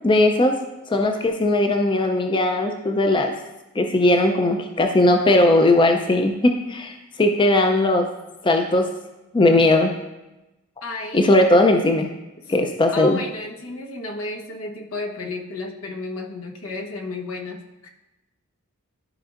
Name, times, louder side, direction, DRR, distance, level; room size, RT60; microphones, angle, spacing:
voice 1, 0.0-0.6 0.9-3.3 3.8-8.1 8.4-8.9 9.3-9.9 11.1-12.1 12.5-13.2, left 2 dB, 25° left, 4 dB, 0.4 m, -18 dB
voice 2, 10.8-11.3 12.4-12.5 12.9-17.9, left 2 dB, 75° left, 0 dB, 1.0 m, -33 dB
12.5 x 5.2 x 2.5 m, 1.0 s
head